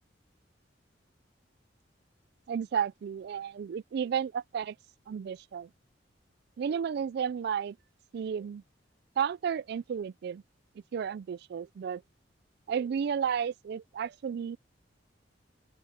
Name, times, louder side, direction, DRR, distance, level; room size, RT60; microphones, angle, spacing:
voice 1, 2.5-4.8 5.1-5.7 6.6-7.8 8.1-8.6 9.2-10.4 10.9-12.0 12.7-14.6, right 7 dB, 60° right, 0.3 m, -32 dB
open air
head